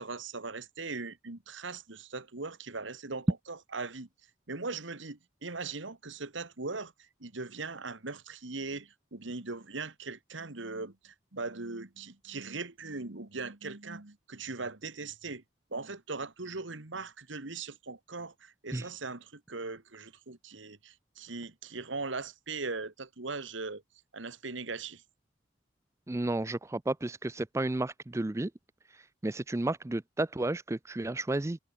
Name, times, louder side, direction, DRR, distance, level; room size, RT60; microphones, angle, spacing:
voice 1, 0.0-4.1 4.5-15.4 15.7-23.8 24.1-25.0, right 3 dB, 75° right, 1.8 m, -40 dB
voice 2, 26.1-28.5 29.2-31.6, right 2 dB, 15° right, 0.4 m, -32 dB
head